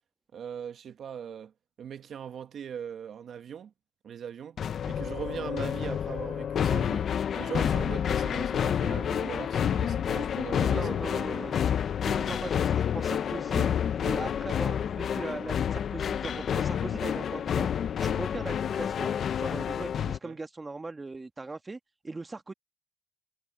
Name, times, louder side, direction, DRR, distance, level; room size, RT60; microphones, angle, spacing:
voice 1, 0.3-1.5 1.8-3.7 4.0-4.6 4.9-7.1 7.4-10.9 20.2-20.4, right 8 dB, 60° right, 1.6 m, -40 dB
sound 1, 4.6-20.2, left 8 dB, 60° left, 0.9 m, -29 dB
voice 2, 10.8-11.5 12.1-13.7 14.0-17.7 18.0-21.8 22.0-22.5, right 3 dB, 25° right, 1.9 m, -39 dB
cardioid pair, 90°, 0 cm